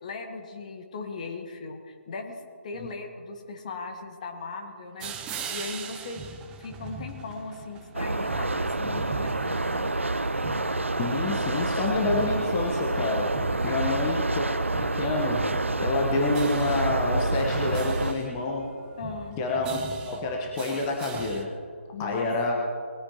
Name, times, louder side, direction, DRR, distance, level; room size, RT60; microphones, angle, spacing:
voice 1, 0.0-9.9 13.6-13.9 19.0-19.4 21.9-22.3, left 4 dB, 35° left, 5 dB, 1.3 m, -38 dB
sound 1, 5.0-21.4, right 5 dB, 10° right, 0.7 m, -42 dB
sound 2, 7.9-18.1, right 2 dB, 75° right, 0.7 m, -28 dB
voice 2, 11.0-13.4 13.6-15.5 15.8-18.7 19.4-19.8 20.1-21.6 22.0-22.5, left 2 dB, 20° left, 0 dB, 1.2 m, -28 dB
21.0 x 14.5 x 3.0 m, 2.1 s
figure-of-eight pair, 145°, 7 cm